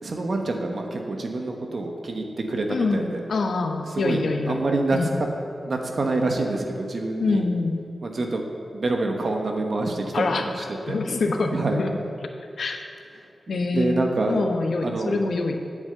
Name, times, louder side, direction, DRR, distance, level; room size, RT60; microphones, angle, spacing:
voice 1, 0.0-3.2 3.9-4.2 4.5-5.0 5.7-7.4 8.0-8.4 8.7-10.3 10.6-11.0 11.5-11.8 13.7-14.4 14.8-15.2, right 2 dB, 55° right, 2 dB, 1.0 m, -26 dB
voice 2, 2.7-5.2 7.2-7.8 10.1-11.9 12.6-12.8 13.5-15.7, left 3 dB, 75° left, 3 dB, 0.9 m, -26 dB
8.3 x 7.3 x 7.9 m, 2.6 s
wide cardioid pair, 90°, 0 cm